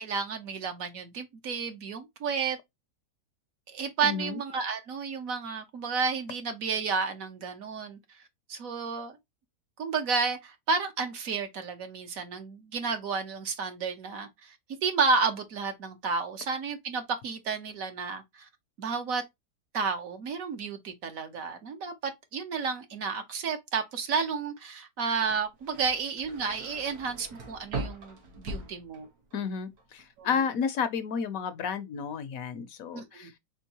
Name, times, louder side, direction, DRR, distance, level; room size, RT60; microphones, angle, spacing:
voice 1, 0.0-2.6 3.7-8.2 8.5-9.1 9.8-14.6 14.8-18.5 18.8-19.2 19.7-29.1 30.2-30.4 32.9-33.3, right 5 dB, 65° right, 1.2 m, -31 dB
voice 2, 4.0-4.4 29.3-33.3, left 6 dB, 70° left, 1.0 m, -31 dB
sound 1, 25.2-29.4 29.8-30.3, right 2 dB, 85° right, 1.8 m, -40 dB
4.4 x 3.9 x 2.8 m
omnidirectional pair, 1.7 m